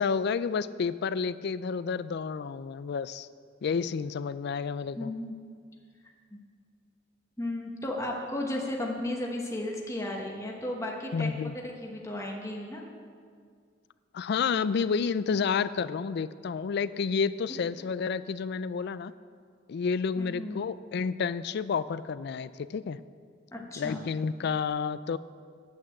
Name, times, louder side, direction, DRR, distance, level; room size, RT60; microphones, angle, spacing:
voice 1, 0.0-3.3 3.6-5.1 11.1-11.5 14.1-19.1 19.7-23.0 23.8-25.2, left 5 dB, 60° left, 16 dB, 0.4 m, -30 dB
voice 2, 5.0-5.3 7.4-12.9 20.2-20.6 23.5-24.1, left 1 dB, 15° left, -1 dB, 1.1 m, -34 dB
9.3 x 8.4 x 7.6 m, 2.1 s
head